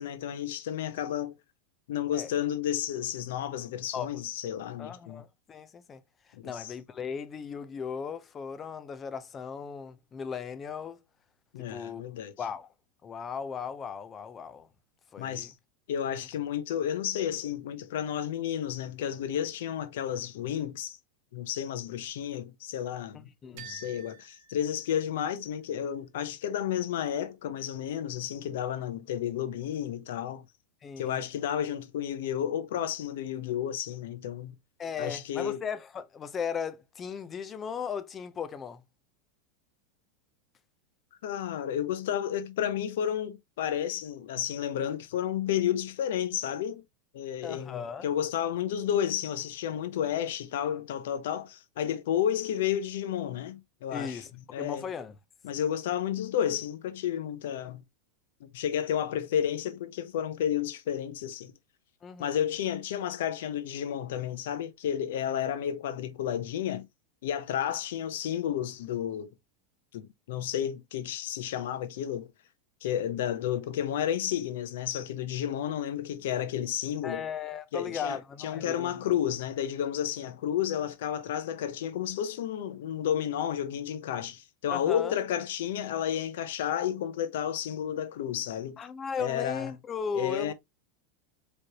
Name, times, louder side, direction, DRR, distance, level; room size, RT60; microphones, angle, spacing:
voice 1, 0.0-1.3 1.9-5.2 6.4-6.7 11.5-12.3 15.2-15.5 15.9-21.0 21.3-30.5 31.0-34.6 35.0-35.6 41.2-46.8 47.1-54.2 54.5-54.9 55.4-57.8 58.4-61.5 62.2-66.9 67.2-69.3 69.9-72.3 72.8-77.3 77.7-88.8 89.2-89.7 90.1-90.5, left 10 dB, 75° left, 0.8 m, -31 dB
voice 2, 4.8-6.0 6.4-11.0 11.7-12.0 12.4-12.7 13.0-14.7 15.1-15.5 23.1-23.8 30.8-31.2 34.8-38.8 47.4-48.1 53.9-55.2 62.0-62.4 77.0-78.9 84.7-85.1 88.8-90.5, left 6 dB, 25° left, 0.6 m, -37 dB
sound 1, 23.6-25.5, right 7 dB, 65° right, 1.1 m, -50 dB
4.8 x 3.2 x 2.9 m
supercardioid pair, 125°, 0 cm